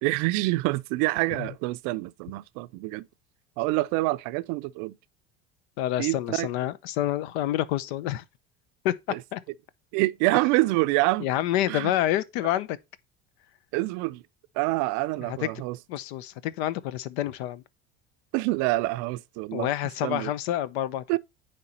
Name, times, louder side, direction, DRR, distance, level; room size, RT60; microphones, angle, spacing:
voice 1, 0.0-3.1 3.6-5.0 6.0-6.5 9.1-9.2 9.9-11.3 11.7-11.9 13.7-14.2 14.5-15.8 18.3-19.7 20.0-20.3 21.1-21.2, right 20 dB, 65° right, 0.5 m, -26 dB
voice 2, 5.8-8.2 8.8-9.4 11.2-12.8 15.3-15.4 15.9-17.6 19.5-21.0, left 13 dB, 75° left, 0.7 m, -28 dB
9.4 x 3.3 x 4.2 m
supercardioid pair, 90°, 32 cm